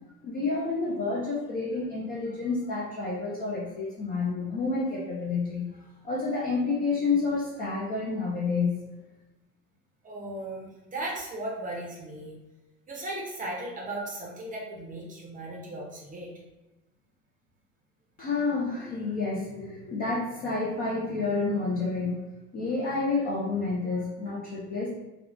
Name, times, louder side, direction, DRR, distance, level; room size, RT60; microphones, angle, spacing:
voice 1, 0.2-8.8 18.2-22.3 22.5-24.9, left 3 dB, 20° left, -6 dB, 0.4 m, -29 dB
voice 2, 10.0-12.4 12.9-16.3, right 1 dB, 15° right, -2 dB, 0.7 m, -36 dB
3.5 x 2.4 x 2.4 m, 1.0 s
figure-of-eight pair, 75°, 49 cm